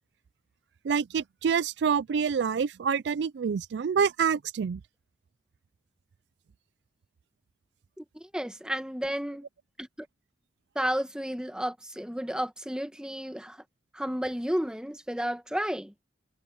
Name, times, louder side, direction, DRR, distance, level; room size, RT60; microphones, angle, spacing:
voice 1, 0.8-4.8, right 6 dB, 65° right, 0.4 m, -27 dB
voice 2, 8.0-9.5 9.8-10.1 10.7-13.6 13.9-15.9, equal, 5° right, 1.4 m, -32 dB
head